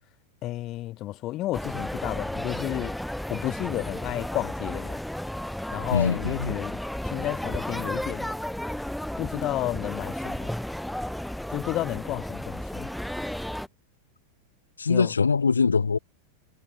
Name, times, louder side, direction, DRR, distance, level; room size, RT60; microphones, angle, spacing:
voice 1, 0.4-3.0 3.3-5.0 5.7-8.4 9.2-10.5 11.5-12.9 14.9-15.1, left 16 dB, 35° left, 5.6 m, -32 dB
sound 1, 1.5-13.7, left 1 dB, ahead, 5.1 m, -33 dB
voice 2, 5.9-6.6 14.8-16.0, left 5 dB, 75° left, 2.3 m, -23 dB
figure-of-eight pair, 90°, 0 cm